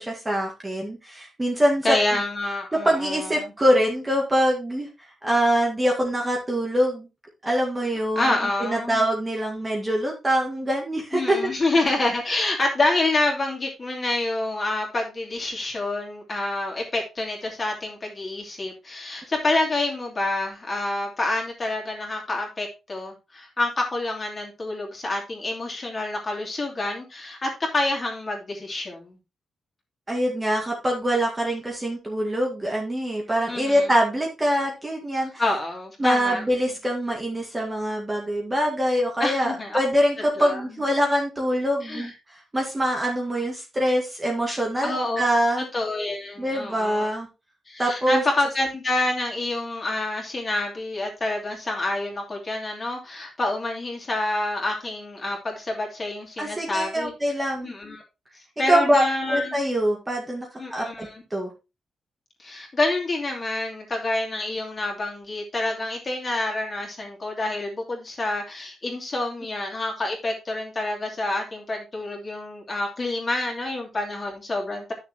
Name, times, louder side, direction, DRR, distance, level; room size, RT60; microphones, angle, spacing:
voice 1, 0.0-2.2 2.8-7.1 7.4-11.4 30.1-35.3 36.0-42.1 42.5-45.7 46.4-47.3 47.8-48.2 56.4-57.7 58.7-61.5, equal, 15° right, -1 dB, 2.0 m, -24 dB
voice 2, 1.8-3.5 8.1-9.0 11.1-29.2 33.5-33.9 35.4-36.4 39.2-39.8 40.4-40.6 41.8-42.1 44.8-45.3 45.7-47.1 47.7-57.1 57.4-58.0 58.6-59.5 60.6-61.2 62.4-74.9, left 2 dB, 25° left, 1 dB, 3.0 m, -27 dB
11.5 x 6.7 x 3.0 m, 0.27 s
wide cardioid pair, 150°, 0 cm